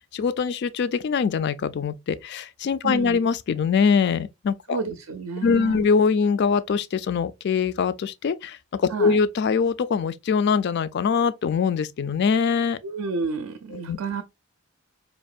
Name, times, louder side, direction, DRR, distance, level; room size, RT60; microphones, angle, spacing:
voice 1, 0.1-4.8 5.4-12.8 13.7-14.0, left 5 dB, 50° left, 0.3 m, -23 dB
voice 2, 2.8-3.2 4.7-5.9 8.9-9.2 12.8-14.2, right 4 dB, 70° right, 0.5 m, -31 dB
4.4 x 2.8 x 2.4 m
head